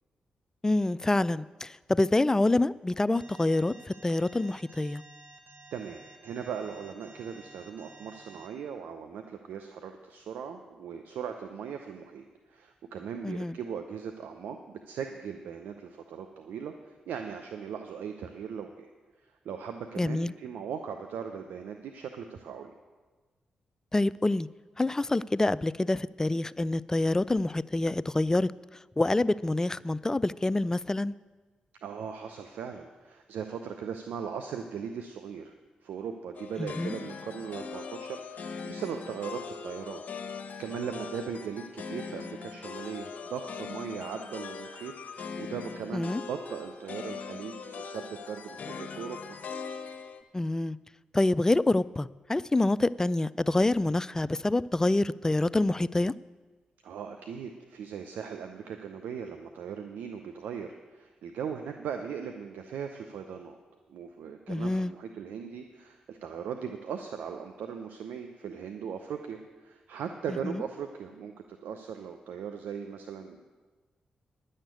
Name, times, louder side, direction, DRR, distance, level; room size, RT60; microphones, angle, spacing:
voice 1, 0.6-5.0 13.2-13.6 20.0-20.3 23.9-24.5 24.8-28.5 29.0-31.1 36.6-36.9 45.9-46.2 50.3-50.8 51.1-56.1 64.5-64.9 70.4-70.6, left 2 dB, 20° left, 19 dB, 0.3 m, -26 dB
Alarm, 3.2-8.5, right 3 dB, 65° right, 1.2 m, -52 dB
voice 2, 5.7-18.9 19.4-22.7 31.8-35.5 35.8-40.0 40.3-49.2 56.8-63.6 63.9-73.4, right 7 dB, 80° right, 6 dB, 0.6 m, -39 dB
sound 1, 36.3-50.2, left 5 dB, 65° left, 0.9 m, -41 dB
10.5 x 6.5 x 9.0 m, 1.3 s
supercardioid pair, 45°, 3 cm